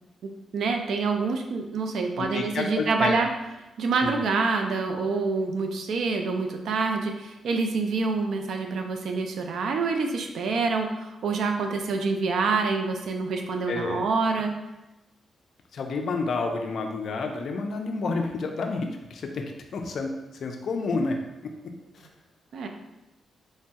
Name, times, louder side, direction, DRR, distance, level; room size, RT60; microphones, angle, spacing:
voice 1, 0.5-3.3 3.8-14.5 22.5-22.7, right 4 dB, 70° right, 4 dB, 0.3 m, -26 dB
voice 2, 2.2-3.2 4.0-4.2 13.7-14.0 15.7-19.4 19.7-20.1 20.4-21.2, left 3 dB, 55° left, 4 dB, 0.3 m, -29 dB
3.1 x 2.2 x 2.7 m, 0.98 s
wide cardioid pair, 160°, 0 cm